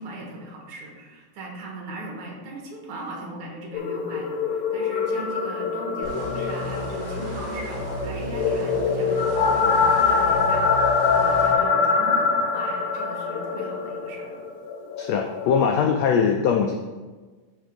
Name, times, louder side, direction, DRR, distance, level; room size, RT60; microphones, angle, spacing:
voice 1, 0.0-14.4, right 2 dB, 65° right, 0 dB, 2.6 m, -38 dB
sound 1, 3.7-15.8, left 5 dB, 70° left, 1.8 m, -24 dB
sound 2, 6.0-11.5, equal, 40° right, 1.0 m, -34 dB
voice 2, 15.0-16.8, left 6 dB, 85° left, 3 dB, 1.5 m, -21 dB
11.0 x 3.7 x 5.1 m, 1.3 s
omnidirectional pair, 3.7 m